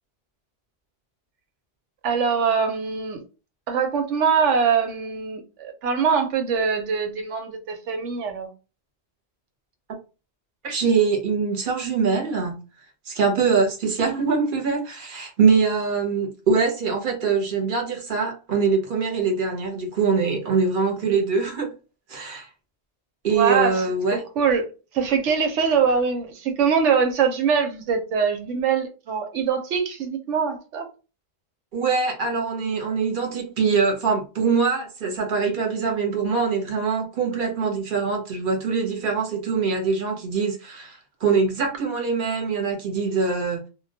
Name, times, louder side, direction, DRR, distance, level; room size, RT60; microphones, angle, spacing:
voice 1, 2.0-3.2 3.7-8.5 23.3-23.8 24.1-24.7 24.9-30.9, right 6 dB, 85° right, 1.0 m, -23 dB
voice 2, 10.6-12.6 13.1-21.7 22.1-22.5 23.2-24.2 31.7-43.6, right 5 dB, 50° right, 0.9 m, -23 dB
2.2 x 2.2 x 2.6 m
omnidirectional pair, 1.2 m